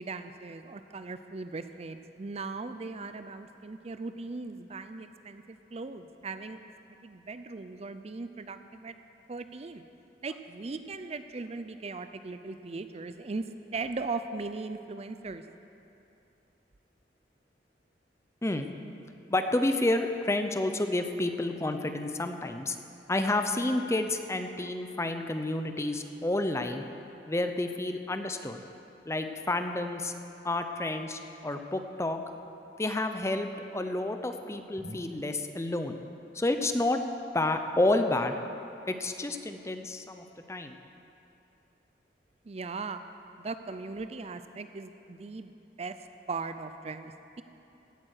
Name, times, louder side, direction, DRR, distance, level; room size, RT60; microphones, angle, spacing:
voice 1, 0.0-6.6 7.0-8.9 9.3-9.8 10.2-13.5 13.7-15.4 42.5-43.0 43.4-45.5 45.8-46.0 46.3-47.4, right 3 dB, 35° right, 10 dB, 0.5 m, -38 dB
voice 2, 19.3-22.8 23.1-26.9 27.3-28.6 29.1-30.1 30.4-32.2 32.8-36.0 36.3-37.0 37.3-38.4 38.9-40.8, left 2 dB, 15° left, 7 dB, 0.6 m, -30 dB
16.5 x 8.7 x 6.5 m, 2.8 s
head